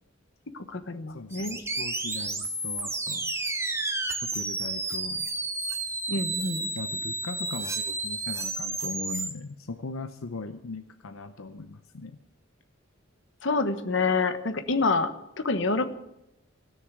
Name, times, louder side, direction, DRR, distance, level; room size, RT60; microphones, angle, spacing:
voice 1, 0.5-1.6 6.1-6.7 13.4-15.1 15.4-15.9, left 3 dB, 65° left, 9 dB, 1.2 m, -27 dB
voice 2, 1.1-3.3 4.2-5.3 6.7-12.2, left 3 dB, 85° left, 9 dB, 0.7 m, -39 dB
sound 1, 1.3-9.3, right 3 dB, 15° right, 1.2 m, -31 dB
16.5 x 6.7 x 9.2 m, 0.87 s
head